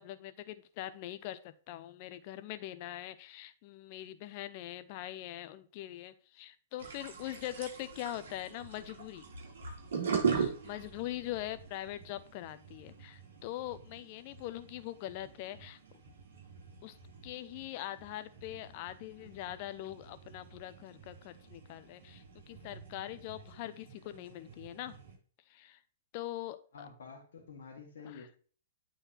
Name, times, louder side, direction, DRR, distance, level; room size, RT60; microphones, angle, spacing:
voice 1, 0.0-9.2 10.3-15.8 16.8-17.0 17.2-25.0 25.5-25.8 26.1-26.9 28.1-28.4, left 14 dB, 45° left, 12 dB, 0.7 m, -42 dB
sound 1, 6.8-25.2, right 6 dB, 65° right, 4.1 m, -42 dB
voice 2, 26.7-28.3, left 5 dB, 65° left, 0 dB, 1.6 m, -49 dB
9.1 x 4.1 x 4.5 m, 0.42 s
figure-of-eight pair, 115°, 0 cm